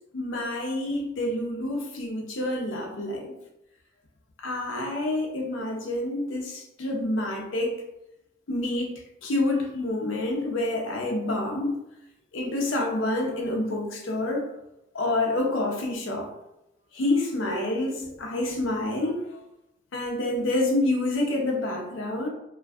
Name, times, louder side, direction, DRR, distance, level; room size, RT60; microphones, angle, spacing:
voice 1, 0.1-3.3 4.4-7.8 8.5-8.9 9.2-11.8 12.3-14.5 14.9-16.3 16.9-19.4 19.9-22.3, left 2 dB, 75° left, 1 dB, 0.6 m, -28 dB
2.5 x 2.2 x 2.3 m, 0.88 s
head